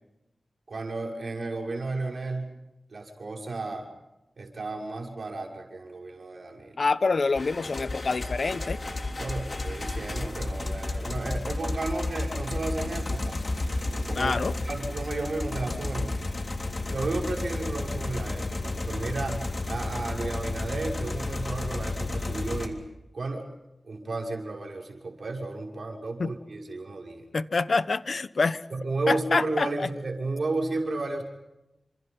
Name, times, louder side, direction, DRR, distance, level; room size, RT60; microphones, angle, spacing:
voice 1, 0.7-2.5 2.9-3.9 4.4-6.8 9.2-13.4 14.1-16.2 16.9-22.8 23.1-23.5 23.8-27.2 28.7-31.2, right 3 dB, 60° right, 1 dB, 6.0 m, -33 dB
voice 2, 6.8-8.8 14.1-14.5 26.2-26.3 27.3-28.6 29.1-29.9, left 4 dB, 60° left, 14 dB, 1.1 m, -26 dB
sound 1, 7.4-22.7, left 2 dB, 45° left, 3.5 m, -32 dB
29.5 x 27.0 x 5.6 m, 0.93 s
wide cardioid pair, 100°, 0 cm